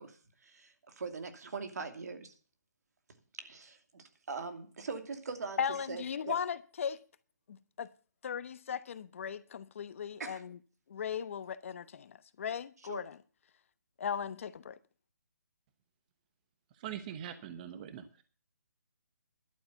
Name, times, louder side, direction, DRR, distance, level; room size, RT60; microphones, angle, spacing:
voice 1, 0.0-2.3 3.4-5.6 5.9-6.4 10.2-10.4 12.9-13.0, right 4 dB, 65° right, 2.7 m, -42 dB
voice 2, 5.6-7.0 7.5-7.9 8.2-10.6 10.9-13.2 14.0-14.8, left 7 dB, 50° left, 1.0 m, -37 dB
voice 3, 16.8-18.2, right 9 dB, 30° right, 1.0 m, -43 dB
11.5 x 8.6 x 7.0 m
hypercardioid pair, 155°, 9 cm